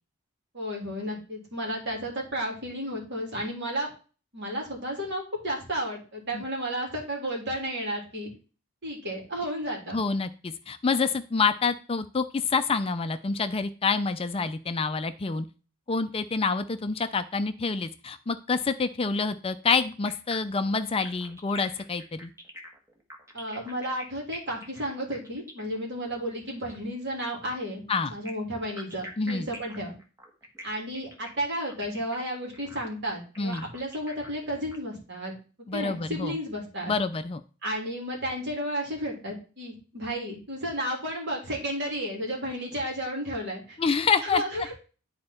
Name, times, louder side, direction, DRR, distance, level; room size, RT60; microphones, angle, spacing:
voice 1, 0.5-3.9 4.3-8.3 8.8-10.0 23.3-27.8 28.1-29.9 30.6-35.3 35.7-37.0 37.6-43.8 44.2-44.7, equal, 55° right, -1 dB, 3.2 m, -33 dB
voice 2, 9.9-15.5 15.9-22.3 27.9-28.1 29.2-29.5 33.4-33.7 35.7-36.4 36.9-37.4 43.8-44.4, left 4 dB, 25° left, 10 dB, 0.4 m, -27 dB
sound 1, 20.1-26.8 28.1-34.8, equal, 15° right, 1.3 m, -45 dB
10.5 x 4.3 x 4.4 m, 0.36 s
head